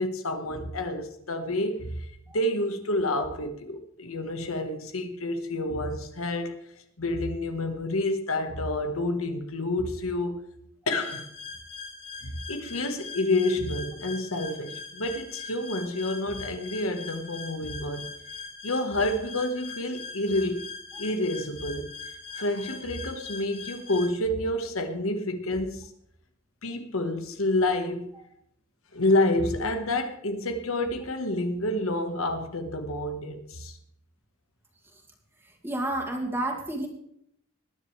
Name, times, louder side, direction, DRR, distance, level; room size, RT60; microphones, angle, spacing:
voice 1, 0.0-2.1 2.3-6.6 7.0-10.4 10.9-11.3 12.5-18.1 18.6-20.7 21.0-21.9 22.3-25.9 26.6-28.1 28.9-33.8, left 1 dB, 75° left, 6 dB, 1.5 m, -28 dB
sound 1, 11.0-24.1, left 4 dB, 55° left, 6.3 m, -41 dB
voice 2, 35.6-36.9, right 1 dB, 10° right, 1 dB, 2.3 m, -30 dB
20.0 x 10.5 x 3.3 m, 0.72 s
head